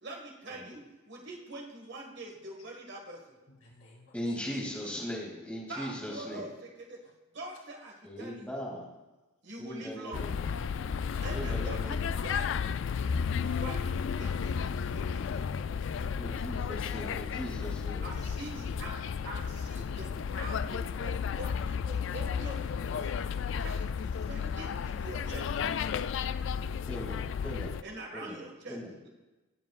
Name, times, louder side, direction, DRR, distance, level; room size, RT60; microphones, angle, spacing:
voice 1, 0.0-3.4 5.7-6.5 6.9-7.0 7.3-8.6 9.4-10.3 11.2-12.5 13.4-15.3 18.0-23.1 23.6-25.9 27.8-28.8 29.0-29.1, right 1 dB, 55° right, 1 dB, 1.8 m, -44 dB
voice 2, 3.5-4.3 10.8-11.3 16.2-16.7, left 2 dB, 85° left, -2 dB, 2.7 m, -56 dB
voice 3, 4.1-6.5 8.0-8.9 9.6-10.5 11.3-12.0 16.2-18.1 26.9-27.7 28.1-28.4 28.7-28.9, equal, 5° left, -4 dB, 2.4 m, -39 dB
sound 1, 10.1-27.8, left 6 dB, 60° left, 0.3 m, -33 dB
17.5 x 7.3 x 2.4 m, 1.1 s
head